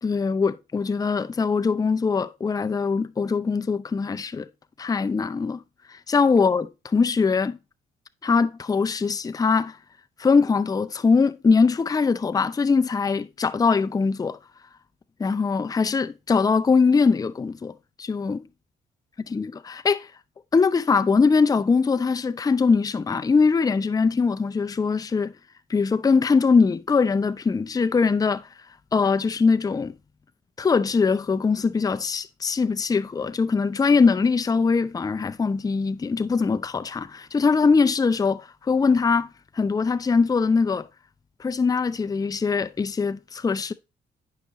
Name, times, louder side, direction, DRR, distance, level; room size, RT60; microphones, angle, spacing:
voice 1, 0.0-4.5 4.8-5.6 5.9-7.6 8.2-9.8 10.2-14.4 15.2-17.7 18.0-18.4 19.3-20.1 20.5-25.3 25.7-28.5 28.9-29.9 30.6-39.3 39.6-40.9 41.4-43.7, left 5 dB, 20° left, 0.4 m, -22 dB
9.2 x 5.7 x 3.0 m
cardioid pair, 75°, 18 cm